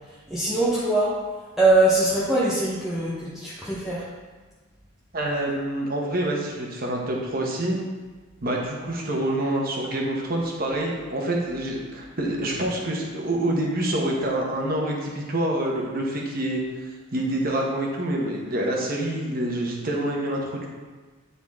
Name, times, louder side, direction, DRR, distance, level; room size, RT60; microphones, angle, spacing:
voice 1, 0.3-1.1 1.6-4.0, right 2 dB, ahead, -9 dB, 0.9 m, -22 dB
voice 2, 5.1-7.8 8.4-16.6 17.1-20.7, right 1 dB, 45° right, -1 dB, 1.1 m, -26 dB
9.6 x 4.1 x 3.6 m, 1.4 s
head